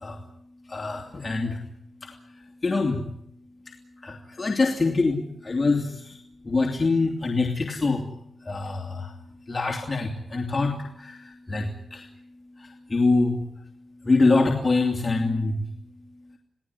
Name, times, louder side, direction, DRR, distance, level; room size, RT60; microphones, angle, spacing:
voice 1, 0.7-1.6 2.6-3.0 4.0-6.2 6.4-8.0 8.5-9.1 9.5-12.0 12.6-13.4 14.0-15.6, left 3 dB, 30° left, 0 dB, 3.0 m, -24 dB
28.5 x 18.0 x 9.7 m, 0.76 s
wide cardioid pair, 115°, 0 cm